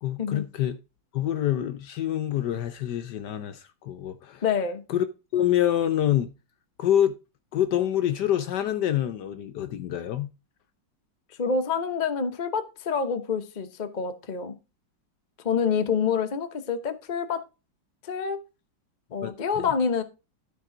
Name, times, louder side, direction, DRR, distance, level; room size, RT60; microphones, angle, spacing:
voice 1, 0.0-0.8 1.1-4.4 4.9-5.0 5.3-6.3 6.8-7.2 7.5-10.3 19.2-19.7, left 11 dB, 70° left, 1.1 m, -26 dB
voice 2, 4.4-4.8 11.4-14.5 15.4-17.4 18.0-18.4 19.1-20.0, left 6 dB, 40° left, 0.6 m, -27 dB
12.5 x 5.4 x 3.8 m
omnidirectional pair, 2.2 m